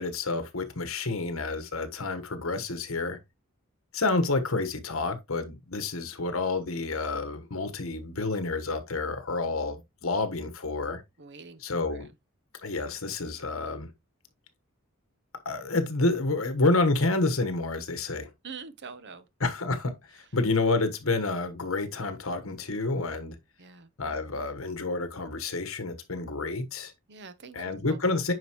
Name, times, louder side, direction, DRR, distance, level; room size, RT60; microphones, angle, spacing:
voice 1, 0.0-3.2 3.9-11.0 11.6-12.1 12.6-13.9 15.4-18.3 19.4-23.3 24.0-26.9 27.5-28.3, left 3 dB, 70° left, 1.3 m, -29 dB
voice 2, 11.2-11.6 18.4-19.3 23.6-23.9 27.1-28.2, right 5 dB, 55° right, 0.9 m, -44 dB
9.4 x 5.2 x 3.0 m
head